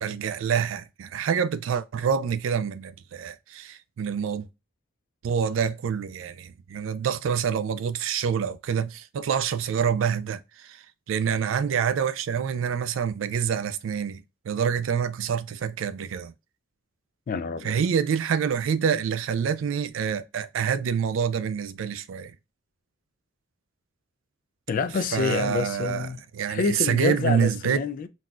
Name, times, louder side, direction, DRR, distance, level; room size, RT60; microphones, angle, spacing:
voice 1, 0.0-4.5 5.2-16.3 17.6-22.3 25.1-26.1 26.3-27.8, right 7 dB, 70° right, 0.3 m, -27 dB
voice 2, 17.3-17.7 24.7-26.2 26.5-28.1, left 4 dB, 45° left, 0.3 m, -27 dB
3.9 x 2.2 x 2.4 m
head